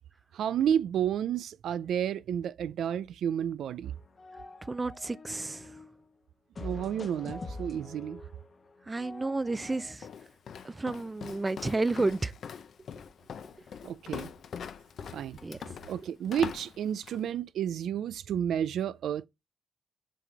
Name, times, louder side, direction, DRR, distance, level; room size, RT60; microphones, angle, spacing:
voice 1, 0.3-3.9 6.6-8.2 13.8-14.3 15.1-15.4 15.9-19.3, right 9 dB, 85° right, 0.3 m, -31 dB
sound 1, 3.9-6.0 6.6-9.9, left 3 dB, 45° left, 1.0 m, -44 dB
voice 2, 4.7-5.7 8.9-10.1 10.6-12.3 15.4-15.7, right 3 dB, 25° right, 0.5 m, -31 dB
Walk footsteps, 9.5-17.3, left 7 dB, 70° left, 0.7 m, -43 dB
7.4 x 4.0 x 3.3 m
cardioid pair, 65°, 0 cm